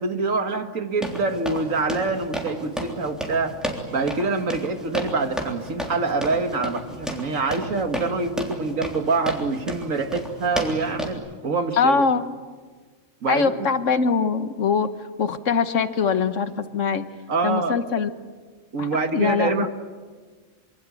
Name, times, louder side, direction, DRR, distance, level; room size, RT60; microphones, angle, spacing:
voice 1, 0.0-3.6 3.9-12.1 13.2-13.7 17.3-17.8 18.7-19.7, right 3 dB, 80° right, 7 dB, 2.1 m, -25 dB
sound 1, 1.0-11.1, equal, ahead, 3.4 m, -32 dB
voice 2, 11.8-12.2 13.3-14.9 15.2-17.0 17.4-18.1 18.8-19.7, left 5 dB, 70° left, 11 dB, 1.5 m, -22 dB
26.0 x 24.0 x 8.4 m, 1.5 s
omnidirectional pair, 1.3 m